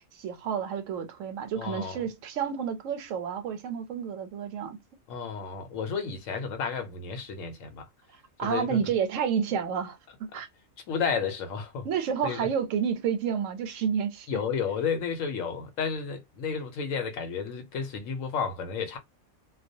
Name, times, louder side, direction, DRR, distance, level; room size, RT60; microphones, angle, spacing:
voice 1, 0.0-4.8 8.4-10.5 11.8-14.3, right 7 dB, 85° right, 1.0 m, -30 dB
voice 2, 1.6-2.0 5.1-7.9 8.4-8.8 10.3-10.4 10.9-11.9 12.2-12.5 14.3-19.0, left 6 dB, 90° left, 1.0 m, -32 dB
2.2 x 2.2 x 2.6 m
omnidirectional pair, 1.3 m